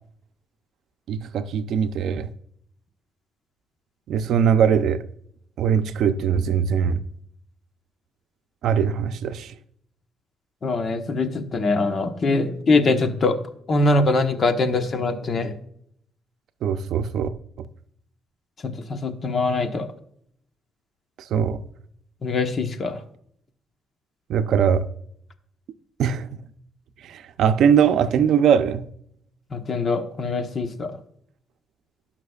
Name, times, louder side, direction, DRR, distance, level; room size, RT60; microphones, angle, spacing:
voice 1, 1.1-2.3 4.1-5.0 5.6-7.0 8.6-9.5 16.6-17.3 17.6-17.7 21.2-21.6 24.3-24.9 26.0-26.4 27.0-28.9, right 7 dB, 75° right, 0.6 m, -21 dB
voice 2, 10.6-13.4 13.7-15.5 18.6-19.9 22.2-23.0 29.5-30.9, left 3 dB, 40° left, 1.1 m, -23 dB
17.5 x 5.9 x 2.4 m
cardioid pair, 115°, 0 cm